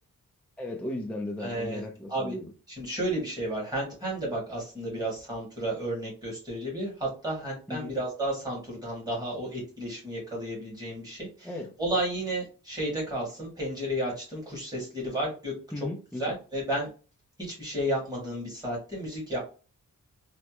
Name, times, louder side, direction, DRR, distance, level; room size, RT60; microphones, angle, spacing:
voice 1, 0.6-2.5 7.7-8.0 11.4-11.7 15.7-16.3, left 1 dB, 5° left, 0.4 m, -36 dB
voice 2, 1.4-1.8 2.1-2.3 2.7-11.5 11.8-15.5 16.2-16.9 17.4-19.4, right 1 dB, 10° right, 1.7 m, -32 dB
3.3 x 2.1 x 2.9 m
wide cardioid pair, 130°, 34 cm